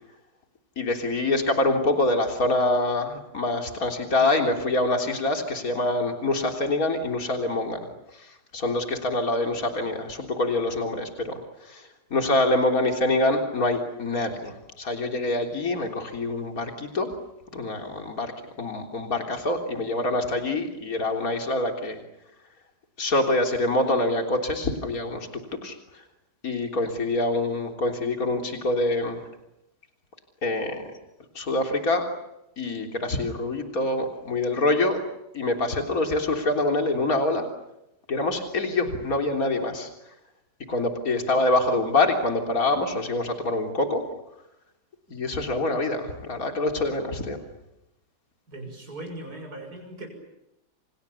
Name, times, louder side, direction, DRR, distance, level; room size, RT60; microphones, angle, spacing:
voice 1, 0.8-7.8 8.1-11.8 12.1-17.1 17.5-18.3 18.6-22.0 23.0-25.3 25.6-25.8 26.4-29.2 30.4-30.8 31.4-32.0 32.6-35.0 35.3-37.5 38.1-39.9 40.7-44.0 45.1-47.4, left 2 dB, 60° left, 3 dB, 3.9 m, -25 dB
voice 2, 48.5-50.1, right 1 dB, 65° right, 3 dB, 7.0 m, -39 dB
30.0 x 28.0 x 7.1 m, 0.88 s
omnidirectional pair, 1.7 m